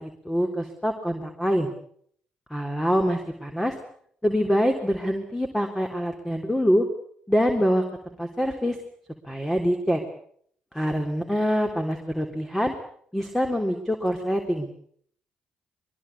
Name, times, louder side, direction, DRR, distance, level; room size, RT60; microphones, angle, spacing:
voice 1, 0.0-1.7 2.5-3.8 4.2-6.9 7.3-8.8 9.2-10.0 10.7-12.7 13.1-14.7, equal, 10° left, 4 dB, 3.5 m, -25 dB
23.5 x 21.5 x 8.3 m, 0.64 s
supercardioid pair, 60°, 3 cm